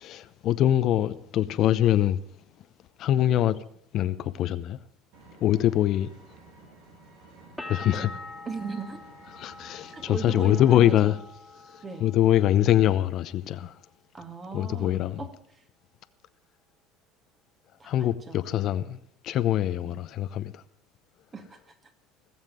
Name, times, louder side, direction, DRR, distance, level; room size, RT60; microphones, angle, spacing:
voice 1, 0.0-2.2 3.0-3.6 3.9-4.8 5.4-6.1 7.7-8.1 9.3-11.2 11.7-13.8 14.5-15.2 17.8-19.0 19.2-20.6, left 12 dB, 55° left, 0.8 m, -23 dB
Vehicle, 5.1-10.8, right 2 dB, 75° right, 3.7 m, -52 dB
sound 1, 7.6-13.2 13.5-14.3, left 2 dB, ahead, 2.4 m, -45 dB
voice 2, 8.5-9.0 9.9-11.1 11.8-12.1 14.1-15.4 17.8-18.6 19.8-20.0 21.3-21.8, right 4 dB, 30° right, 2.3 m, -38 dB
18.0 x 7.3 x 7.7 m
supercardioid pair, 90°, 0 cm